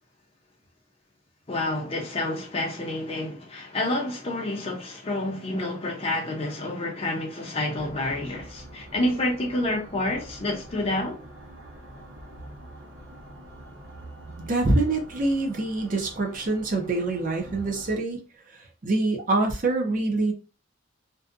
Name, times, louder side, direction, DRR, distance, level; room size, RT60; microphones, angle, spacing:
voice 1, 1.5-11.2, left 1 dB, 30° left, 0.6 m, -29 dB
sound 1, 7.8-18.0, right 1 dB, 65° right, 0.9 m, -45 dB
voice 2, 14.4-18.2 18.8-20.3, right 2 dB, 45° right, 0.5 m, -25 dB
2.6 x 2.2 x 2.4 m
head